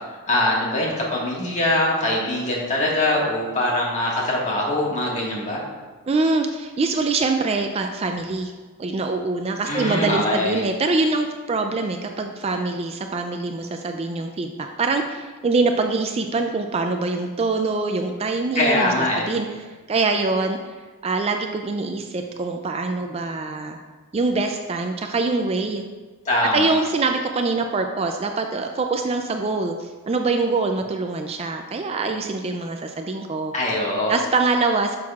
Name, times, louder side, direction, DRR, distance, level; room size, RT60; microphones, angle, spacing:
voice 1, 0.3-5.6 9.7-10.6 18.5-19.2 26.2-26.7 33.5-34.1, left 1 dB, 35° left, -4 dB, 1.6 m, -22 dB
voice 2, 6.1-8.5 8.8-20.6 21.0-23.8 24.1-25.8 26.5-33.5 34.1-35.0, right 3 dB, 30° right, 5 dB, 0.3 m, -24 dB
10.5 x 6.3 x 2.4 m, 1.3 s
head